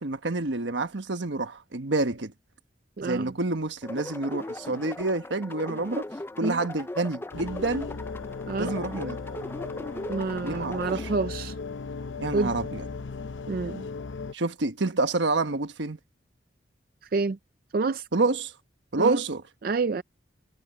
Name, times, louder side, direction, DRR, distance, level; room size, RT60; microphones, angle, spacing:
voice 1, 0.0-2.3 3.0-6.1 6.4-7.9 8.6-9.2 10.4-10.8 12.2-12.8 14.3-16.0 18.1-18.5 18.9-19.4, right 3 dB, 80° right, 1.2 m, -28 dB
voice 2, 3.0-3.3 6.4-6.6 8.5-8.7 10.1-11.6 12.3-12.5 13.5-13.8 17.0-17.4 17.7-18.1 19.0-19.2 19.6-20.0, right 4 dB, 50° right, 0.4 m, -28 dB
sound 1, 3.8-11.2, left 2 dB, 10° left, 0.4 m, -39 dB
sound 2, 7.3-14.3, left 4 dB, 90° left, 0.7 m, -36 dB
head